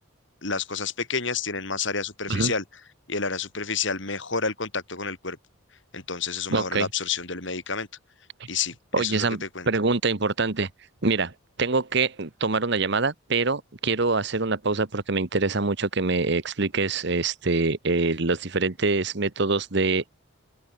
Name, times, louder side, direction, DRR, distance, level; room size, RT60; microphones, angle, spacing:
voice 1, 0.4-2.6 3.1-5.4 5.9-7.9 8.5-9.7, left 5 dB, 60° left, 5.6 m, -29 dB
voice 2, 6.5-6.9 8.4-8.5 8.9-10.7 11.0-11.3 11.6-20.1, right 3 dB, 55° right, 1.2 m, -25 dB
open air
head